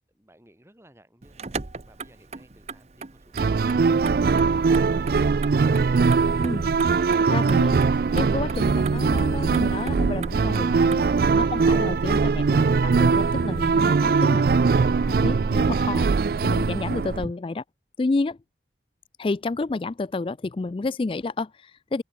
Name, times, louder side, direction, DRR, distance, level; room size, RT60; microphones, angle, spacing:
voice 1, 0.1-1.5 1.9-5.4 16.9-17.3, equal, 15° right, 3.6 m, -53 dB
Motor vehicle (road), 1.2-11.0, right 4 dB, 35° right, 0.8 m, -40 dB
sound 1, 3.3-17.3, right 4 dB, 55° right, 0.4 m, -21 dB
voice 2, 7.2-7.8 8.1-11.1 11.3-17.5 18.0-18.4 19.2-22.0, left 3 dB, 30° left, 0.3 m, -30 dB
open air
head